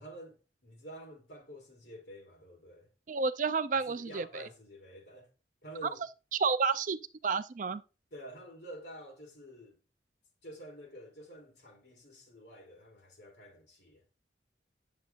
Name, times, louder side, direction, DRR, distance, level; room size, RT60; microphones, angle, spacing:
voice 1, 0.0-2.9 3.8-5.3 5.6-6.0 8.1-9.8 10.4-14.0, equal, 65° left, 3.1 m, -49 dB
voice 2, 3.1-4.5 6.3-7.0 7.2-7.8, right 5 dB, 45° right, 0.4 m, -30 dB
8.8 x 7.3 x 2.5 m
head